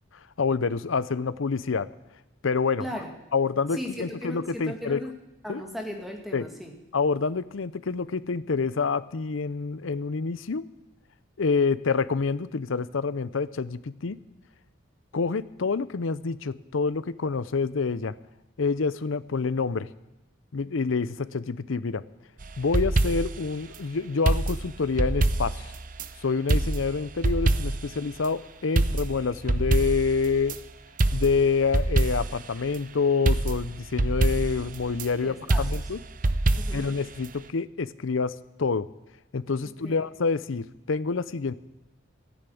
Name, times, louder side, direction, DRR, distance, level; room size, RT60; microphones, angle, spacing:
voice 1, 0.4-1.9 2.4-2.9 3.3-5.0 5.5-5.6 6.3-6.5 6.9-10.6 11.4-14.2 15.1-18.1 18.6-19.9 20.5-22.0 22.6-25.7 26.2-30.6 31.1-36.0 36.7-38.9 39.3-41.5, left 4 dB, 75° left, 16 dB, 0.6 m, -27 dB
voice 2, 2.8-3.1 3.7-5.1 5.4-6.8 35.2-35.7 36.6-36.9 39.6-40.1, equal, ahead, 1 dB, 2.1 m, -37 dB
sound 1, 22.4-23.5 24.3-26.1 26.5-28.0 28.2-28.3 28.8-30.6 31.0-32.5 32.7-32.8 33.3-35.1 35.5-37.0 37.3-37.4, right 2 dB, 40° right, 0.7 m, -25 dB
14.5 x 10.5 x 8.5 m, 0.96 s
head